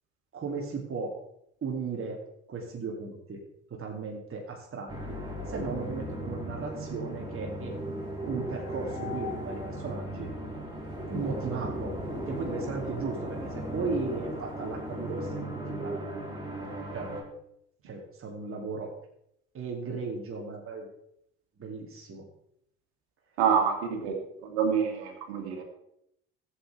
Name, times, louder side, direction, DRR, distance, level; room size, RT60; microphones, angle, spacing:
voice 1, 0.3-1.1 1.6-2.2 2.5-3.4 3.7-5.2 5.5-7.7 8.3-10.3 11.1-11.9 12.2-16.0 16.9-17.1 17.8-18.9 19.5-20.9 21.6-22.3, right 4 dB, 40° right, 0 dB, 2.4 m, -36 dB
sound 1, 4.9-17.2, right 1 dB, 15° right, 4.7 m, -36 dB
voice 2, 23.4-24.2 24.4-25.6, right 7 dB, 75° right, 3 dB, 2.2 m, -27 dB
15.5 x 8.1 x 3.3 m, 0.76 s
hypercardioid pair, 55°, 32 cm